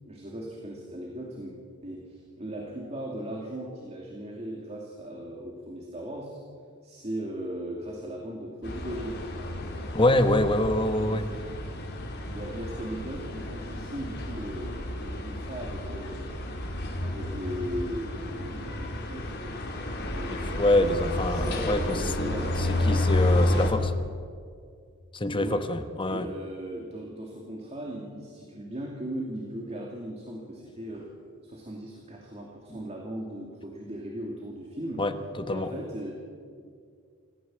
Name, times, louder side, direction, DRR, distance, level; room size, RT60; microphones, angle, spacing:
voice 1, 0.1-1.6 1.8-6.4 6.8-9.2 12.3-16.3 17.0-23.1 25.4-25.7 26.1-31.1 31.4-35.1 35.5-36.1, right 1 dB, 30° right, -1 dB, 2.7 m, -38 dB
sound 1, 8.6-23.7, left 1 dB, 50° left, 4.1 m, -31 dB
voice 2, 9.9-11.3 20.3-23.9 25.1-26.3 32.7-32.8 35.0-35.7, left 1 dB, 25° left, 8 dB, 1.2 m, -26 dB
27.0 x 15.0 x 7.7 m, 2.2 s
head